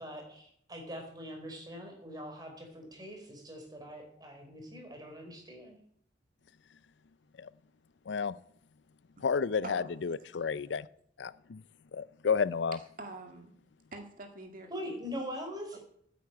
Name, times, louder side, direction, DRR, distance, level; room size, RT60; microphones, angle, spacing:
voice 1, 0.0-5.8 14.7-15.8, equal, 20° right, 2 dB, 4.0 m, -42 dB
voice 2, 9.2-10.9 11.2-11.6 11.9-12.8, left 5 dB, 80° left, 18 dB, 0.5 m, -31 dB
voice 3, 13.0-13.5 13.9-15.0 15.7-15.8, right 2 dB, 50° right, 5 dB, 1.9 m, -45 dB
9.6 x 9.4 x 8.7 m, 0.65 s
head